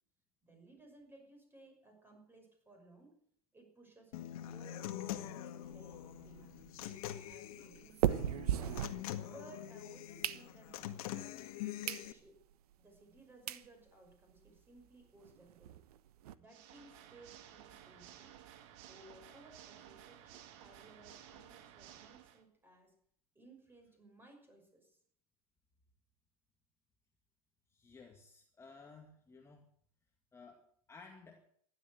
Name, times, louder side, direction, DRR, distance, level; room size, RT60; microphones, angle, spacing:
voice 1, 0.4-3.2 3.5-4.9 5.2-6.6 7.2-8.8 9.2-10.9 11.8-12.4 12.8-15.8 16.3-18.3 18.9-22.9 23.3-25.0, right 2 dB, 10° right, 3 dB, 6.1 m, -60 dB
Human voice / Acoustic guitar, 4.1-12.1, left 12 dB, 70° left, 1.8 m, -44 dB
sound 1, 5.6-9.6 10.0-10.9 11.4-11.5 11.8-12.1 12.5-12.6 13.2-13.3 13.5-13.7 14.1-14.2 14.4-14.5 14.8-14.9 15.2-16.3, right 12 dB, 75° right, 1.2 m, -38 dB
Water / Mechanisms, 16.4-22.4, right 10 dB, 55° right, 2.3 m, -56 dB
voice 2, 27.7-29.7 30.3-31.4, left 4 dB, 15° left, 2 dB, 2.1 m, -56 dB
15.5 x 12.0 x 8.0 m, 0.64 s
supercardioid pair, 130°, 19 cm